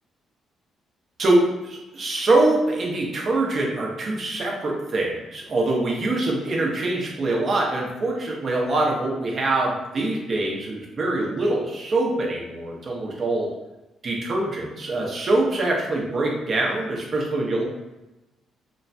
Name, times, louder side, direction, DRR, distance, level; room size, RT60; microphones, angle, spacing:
voice 1, 1.2-13.5 14.0-17.6, right 2 dB, 45° right, -1 dB, 0.7 m, -24 dB
3.0 x 2.1 x 2.6 m, 1.0 s
cardioid pair, 90°, 0 cm